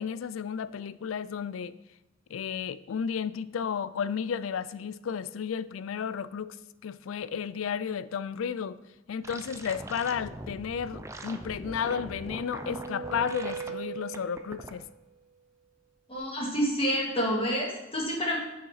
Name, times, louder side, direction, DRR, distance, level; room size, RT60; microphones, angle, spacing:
voice 1, 0.0-1.8 2.3-6.6 6.8-8.8 9.1-14.8, left 7 dB, 85° left, 16 dB, 0.4 m, -33 dB
sound 1, 9.2-13.7 14.1-14.7, right 2 dB, 15° right, 0.5 m, -41 dB
sound 2, 11.7-14.7, right 5 dB, 85° right, 2.3 m, -40 dB
voice 2, 16.1-18.4, equal, 30° left, -3 dB, 2.1 m, -28 dB
6.5 x 5.4 x 5.7 m, 1.0 s
head